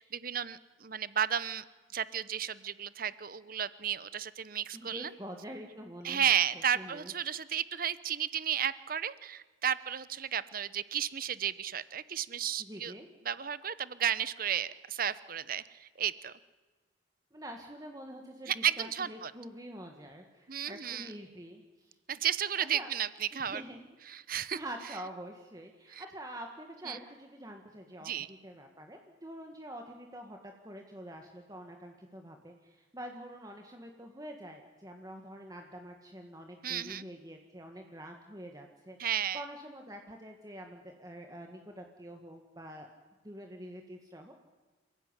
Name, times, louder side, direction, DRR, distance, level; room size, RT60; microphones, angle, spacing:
voice 1, 0.0-1.6 1.9-5.1 6.0-12.9 13.2-16.3 18.5-19.3 20.5-21.1 22.1-23.6 24.1-24.6 25.9-26.0 26.8-27.0 28.0-28.3 36.6-37.0 39.0-39.4, right 9 dB, 45° right, 16 dB, 0.9 m, -33 dB
voice 2, 4.7-6.3 6.7-7.1 12.6-13.1 17.3-22.0 22.7-22.9 23.4-23.8 24.3-28.1 28.4-39.0 39.3-42.9 43.2-44.3, right 1 dB, 20° right, 3 dB, 1.8 m, -46 dB
28.0 x 16.0 x 9.9 m, 1.3 s
head